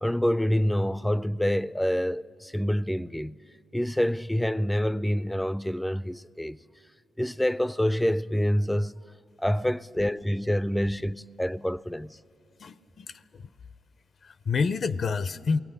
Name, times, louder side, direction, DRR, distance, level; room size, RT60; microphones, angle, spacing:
voice 1, 0.0-3.4 3.7-6.6 7.2-9.0 9.4-12.2, equal, 5° left, 0.5 m, -27 dB
voice 2, 12.6-13.5 14.2-15.6, left 5 dB, 55° left, 0.6 m, -29 dB
20.5 x 17.5 x 9.9 m
supercardioid pair, 55°, 0 cm